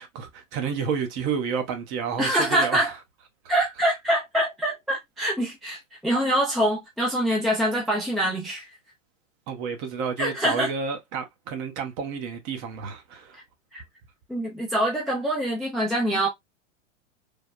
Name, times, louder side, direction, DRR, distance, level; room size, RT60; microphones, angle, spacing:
voice 1, 0.0-2.9 9.5-13.4, right 6 dB, 35° right, 0.7 m, -30 dB
voice 2, 2.2-2.9 3.5-8.7 10.2-10.7 13.7-13.8 14.3-16.3, right 1 dB, ahead, 0.4 m, -25 dB
3.3 x 2.1 x 2.4 m
hypercardioid pair, 110°, 40 cm